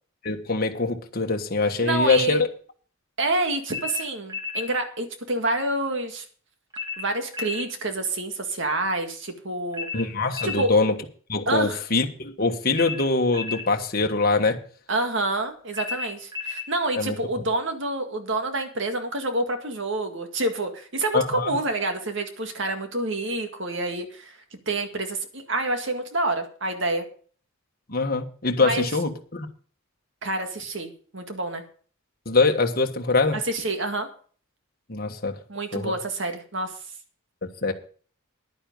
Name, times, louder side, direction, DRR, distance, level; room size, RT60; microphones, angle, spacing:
voice 1, 0.2-2.5 9.9-10.9 11.3-14.6 17.0-17.1 21.1-21.5 27.9-29.5 32.2-33.4 34.9-35.4 35.7-35.9 37.6-37.7, left 3 dB, 45° left, 3 dB, 1.4 m, -23 dB
voice 2, 1.8-2.4 3.2-6.2 7.0-9.9 10.4-10.7 11.5-11.8 14.9-24.4 24.7-27.1 28.6-28.9 30.2-31.6 33.3-34.1 35.5-36.7, right 2 dB, 60° right, 6 dB, 2.0 m, -27 dB
sound 1, 3.7-4.7 6.7-7.7 9.7-10.7 12.7-13.7 15.7-16.7, left 6 dB, 20° right, 1.9 m, -33 dB
10.5 x 9.9 x 5.4 m, 0.43 s
head